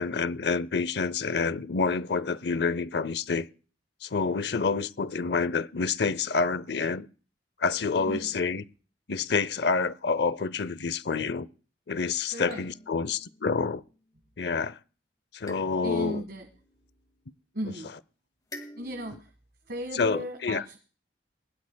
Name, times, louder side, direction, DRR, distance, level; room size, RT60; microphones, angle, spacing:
voice 1, 0.0-3.5 4.0-7.1 7.6-8.6 9.1-11.5 11.9-13.8 14.4-14.8 15.3-16.2 20.0-20.6, left 4 dB, 65° left, 0.7 m, -28 dB
voice 2, 8.0-8.4 12.3-12.7 15.8-16.5 17.5-17.9 18.7-19.3 19.7-20.8, right 1 dB, 60° right, 1.9 m, -36 dB
sound 1, 12.5-14.1 15.4-17.6 18.5-19.2, left 1 dB, 20° left, 2.0 m, -49 dB
21.5 x 12.0 x 2.3 m
head